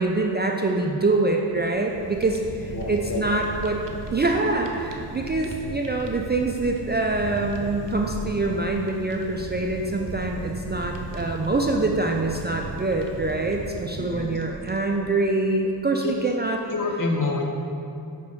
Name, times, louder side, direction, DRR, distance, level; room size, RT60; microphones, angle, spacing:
voice 1, 0.0-3.8 4.1-16.6, right 2 dB, 25° right, 1 dB, 0.3 m, -25 dB
Fire, 1.5-15.1, right 3 dB, 75° right, 0.7 m, -37 dB
voice 2, 2.7-3.6 14.0-14.4 16.0-16.1 16.7-17.4, left 3 dB, 45° left, 2 dB, 0.8 m, -28 dB
5.3 x 4.5 x 5.2 m, 2.6 s
wide cardioid pair, 85°, 43 cm